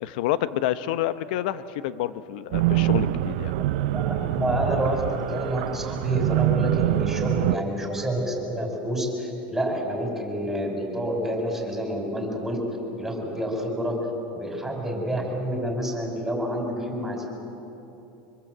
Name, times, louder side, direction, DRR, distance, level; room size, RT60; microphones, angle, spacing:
voice 1, 0.0-3.5, left 12 dB, 70° left, 14 dB, 0.9 m, -28 dB
sound 1, 2.5-7.6, right 16 dB, 75° right, 0.5 m, -25 dB
voice 2, 3.9-12.6 13.0-14.1 14.3-17.3, equal, 5° right, 1 dB, 5.2 m, -28 dB
25.0 x 22.5 x 7.9 m, 3.0 s
supercardioid pair, 145°, 5 cm